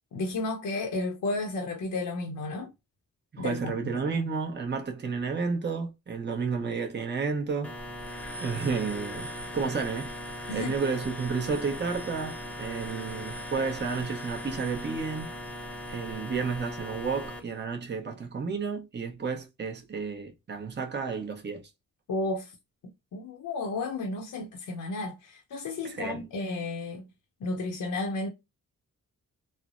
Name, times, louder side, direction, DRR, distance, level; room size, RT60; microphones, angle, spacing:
voice 1, 0.1-2.7 3.4-4.0 10.5-10.7 22.1-22.5 23.1-27.1 27.4-28.3, left 2 dB, 70° left, 0.7 m, -32 dB
voice 2, 3.3-7.8 8.4-10.1 10.5-15.3 15.9-21.6 25.8-26.2, right 5 dB, 30° right, 0.8 m, -31 dB
sound 1, 7.6-17.4, equal, 5° left, 0.6 m, -39 dB
3.2 x 2.0 x 2.4 m
cardioid pair, 60°, 33 cm